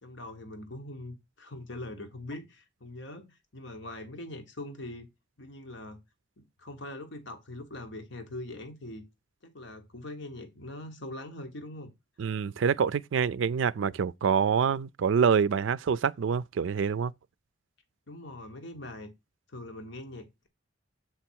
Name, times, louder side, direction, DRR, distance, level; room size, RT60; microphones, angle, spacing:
voice 1, 0.0-5.1 5.4-6.0 6.4-9.1 9.4-11.9 12.5-12.7 18.1-19.1 19.5-20.5, left 1 dB, 65° left, 1.3 m, -42 dB
voice 2, 12.2-17.1, right 6 dB, 70° right, 0.4 m, -26 dB
7.6 x 4.2 x 4.5 m
head